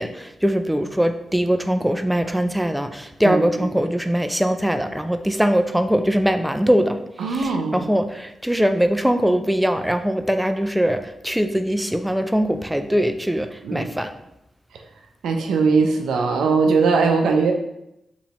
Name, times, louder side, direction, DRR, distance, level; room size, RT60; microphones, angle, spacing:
voice 1, 0.0-7.0 7.3-14.1, equal, 5° right, 8 dB, 0.3 m, -21 dB
voice 2, 3.2-3.7 7.2-7.9 13.6-13.9 15.2-17.5, right 4 dB, 85° right, 4 dB, 0.5 m, -20 dB
3.0 x 2.7 x 4.1 m, 0.85 s
supercardioid pair, 50°, 0 cm